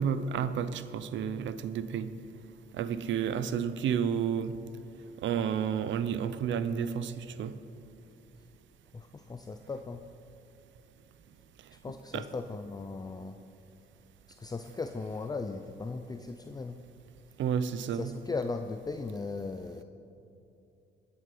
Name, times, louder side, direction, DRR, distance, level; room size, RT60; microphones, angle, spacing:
voice 1, 0.0-2.1 2.7-4.6 5.2-7.6 12.1-12.2 17.4-18.1, right 7 dB, 70° right, 13 dB, 0.7 m, -31 dB
voice 2, 8.9-10.0 11.7-13.4 14.3-16.8 17.9-19.8, left 3 dB, 20° left, 7 dB, 0.6 m, -37 dB
16.5 x 9.5 x 5.5 m, 2.7 s
cardioid pair, 90°, 20 cm